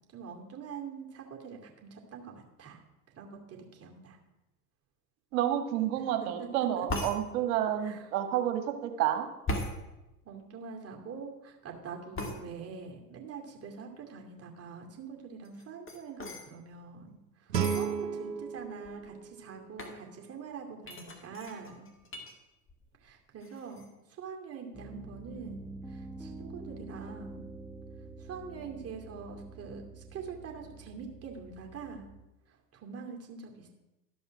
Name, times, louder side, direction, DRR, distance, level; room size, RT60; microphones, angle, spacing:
voice 1, 0.1-2.8 3.1-4.2 6.0-6.9 7.8-8.1 10.2-21.9 23.0-27.5 28.2-32.1 32.5-33.7, right 5 dB, 30° right, 1 dB, 2.5 m, -44 dB
voice 2, 5.3-9.3, right 11 dB, 60° right, 6 dB, 1.7 m, -30 dB
sound 1, 6.9-7.2 9.5-9.7 12.1-12.4 15.4-16.5 17.5-17.9 18.6-18.7 18.8-19.2 19.8-20.0 20.8-22.3 22.7-23.1 23.4-23.9, left 1 dB, 25° left, 2.1 m, -37 dB
Guitar, 17.5-20.3, right 7 dB, 85° right, 0.7 m, -35 dB
Piano, 24.7-32.2, right 3 dB, ahead, 0.4 m, -46 dB
13.0 x 5.5 x 5.9 m, 0.97 s
hypercardioid pair, 85°, 49 cm